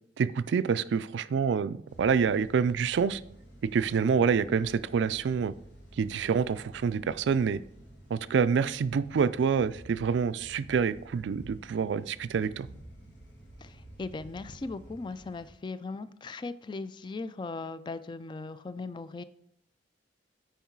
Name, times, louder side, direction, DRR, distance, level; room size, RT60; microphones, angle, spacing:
voice 1, 0.2-3.2 3.6-5.5 6.0-7.6 8.1-12.7, right 6 dB, 70° right, 15 dB, 0.3 m, -27 dB
sound 1, 1.9-15.5, right 1 dB, 85° left, 2.6 m, -51 dB
voice 2, 13.6-19.2, left 3 dB, 25° left, 14 dB, 0.3 m, -39 dB
9.3 x 4.6 x 4.6 m, 0.73 s
head